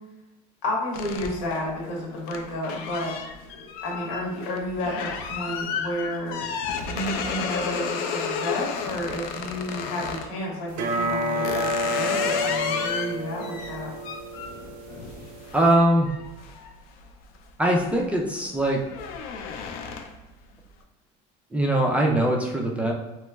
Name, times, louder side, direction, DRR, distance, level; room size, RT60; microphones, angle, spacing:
voice 1, 0.6-3.1 3.8-6.4 6.9-13.9, left 1 dB, 80° left, -2 dB, 1.2 m, -31 dB
sound 1, 0.9-10.3 10.9-17.4 17.8-18.1 18.5-20.3, left 6 dB, 60° left, 0.4 m, -33 dB
sound 2, 10.7-15.7, equal, 80° right, 0.4 m, -29 dB
voice 2, 15.5-16.1 17.6-18.8 21.5-22.9, right 1 dB, 5° right, -1 dB, 0.3 m, -21 dB
3.1 x 2.9 x 2.2 m, 1.1 s
cardioid pair, 135°, 17 cm